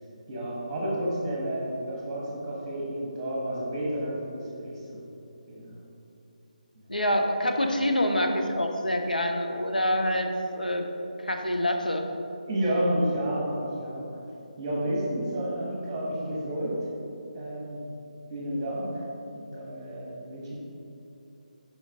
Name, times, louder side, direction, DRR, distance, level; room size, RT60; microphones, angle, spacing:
voice 1, 0.3-5.0 5.5-5.8 12.5-14.1 14.6-16.7 17.3-17.9 18.3-19.0 19.3-20.6, right 1 dB, 20° right, -4 dB, 1.3 m, -31 dB
voice 2, 6.9-10.9 11.2-12.1, left 1 dB, 80° left, 3 dB, 0.6 m, -26 dB
6.2 x 5.2 x 3.6 m, 2.7 s
figure-of-eight pair, 150°, 4 cm